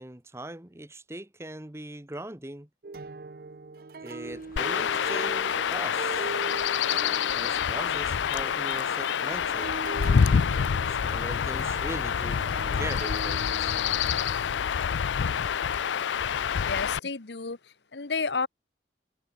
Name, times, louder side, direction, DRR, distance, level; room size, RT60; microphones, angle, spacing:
voice 1, 0.0-2.7 4.0-6.4 7.4-9.8 10.8-12.4 12.7-13.8, right 1 dB, 15° right, 1.0 m, -40 dB
sound 1, 2.8-15.4, right 3 dB, 55° right, 0.6 m, -41 dB
sound 2, 4.2-10.0, left 2 dB, 50° left, 1.6 m, -53 dB
Chirp tweet / Wind / Stream, 4.6-17.0, left 7 dB, 90° left, 0.4 m, -27 dB
voice 2, 16.5-18.5, left 4 dB, 70° left, 1.1 m, -32 dB
head